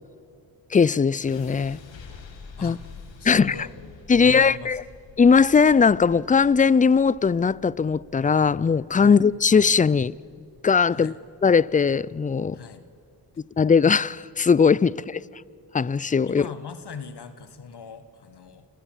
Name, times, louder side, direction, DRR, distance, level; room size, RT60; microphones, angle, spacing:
voice 1, 0.7-1.8 2.6-2.8 3.2-3.5 4.1-4.8 5.2-10.2 10.6-11.1 11.4-12.6 13.6-15.2 15.7-16.5, left 5 dB, 20° left, 0.4 m, -19 dB
sound 1, 1.2-13.3, left 4 dB, 80° left, 2.3 m, -48 dB
voice 2, 3.2-4.8 9.0-9.2 10.9-11.2 12.5-12.9 16.2-18.7, left 6 dB, 60° left, 1.5 m, -40 dB
27.5 x 15.0 x 7.4 m
supercardioid pair, 40°, 45 cm